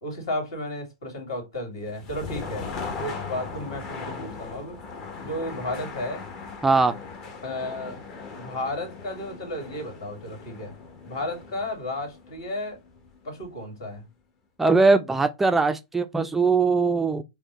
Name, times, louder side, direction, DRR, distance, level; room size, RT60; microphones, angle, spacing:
voice 1, 0.0-2.7 3.0-4.8 5.2-6.2 7.4-8.0 8.4-10.7 11.1-12.8 13.2-14.0, left 1 dB, 60° left, 2.2 m, -33 dB
sound 1, 1.8-13.7, left 4 dB, 30° left, 0.9 m, -39 dB
voice 2, 6.6-6.9 14.6-17.2, right 4 dB, 10° right, 0.4 m, -20 dB
5.0 x 2.1 x 3.0 m
hypercardioid pair, 110°, 2 cm